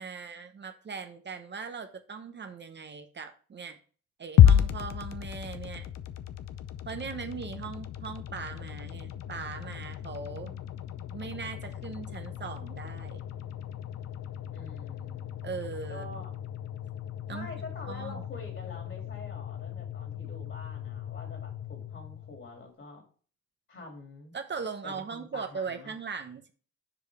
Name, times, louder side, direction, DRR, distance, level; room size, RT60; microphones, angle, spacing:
voice 1, 0.0-3.8 4.2-5.9 6.9-10.6 11.1-13.2 15.4-16.2 17.3-17.5 17.9-18.2 24.3-26.5, right 5 dB, 35° right, 7 dB, 0.8 m, -39 dB
sound 1, 4.4-22.6, left 10 dB, 60° left, 0.7 m, -31 dB
voice 2, 14.5-15.5 15.9-16.3 17.3-23.0 23.7-24.4 24.8-26.0, left 2 dB, 40° left, 3 dB, 2.6 m, -46 dB
6.9 x 5.0 x 3.4 m, 0.40 s
cardioid pair, 90°, 30 cm